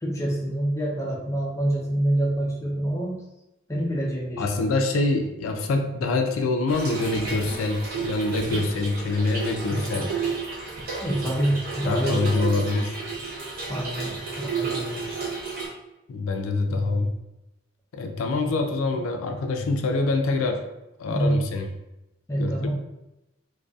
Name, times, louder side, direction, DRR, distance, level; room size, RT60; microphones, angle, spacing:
voice 1, 0.0-3.1 3.7-4.5 9.7-10.1 11.0-12.8 13.7-15.1 16.7-17.1 18.4-18.6 21.1-21.4 22.3-22.7, right 1 dB, 15° left, -2 dB, 0.4 m, -27 dB
voice 2, 4.4-10.1 11.9-13.0 16.1-17.1 17.9-20.6 21.0-21.7 22.4-22.5, left 3 dB, 90° left, 5 dB, 0.3 m, -25 dB
Trickle dribble / Fill (with liquid), 6.7-15.7, right 4 dB, 45° right, 0.6 m, -32 dB
2.5 x 2.3 x 2.3 m, 0.94 s
head